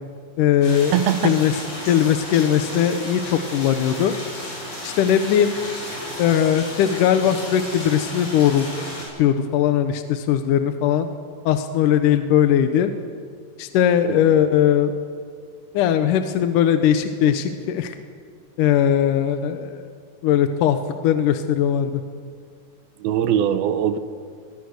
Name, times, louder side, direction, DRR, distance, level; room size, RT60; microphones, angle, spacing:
voice 1, 0.4-1.0 1.2-1.6 1.9-4.1 4.8-5.5 6.2-8.7 9.2-11.1 11.5-12.9 13.6-14.9 15.7-18.0 18.6-19.8 20.2-20.8 21.0-22.0, left 9 dB, 75° left, 8 dB, 2.2 m, -19 dB
sound 1, 0.6-9.0, left 1 dB, 45° left, 8.4 m, -34 dB
voice 2, 0.9-1.3 14.1-14.3 23.0-24.0, right 10 dB, 90° right, 11 dB, 2.9 m, -21 dB
22.0 x 21.0 x 6.5 m, 2.1 s
omnidirectional pair, 4.3 m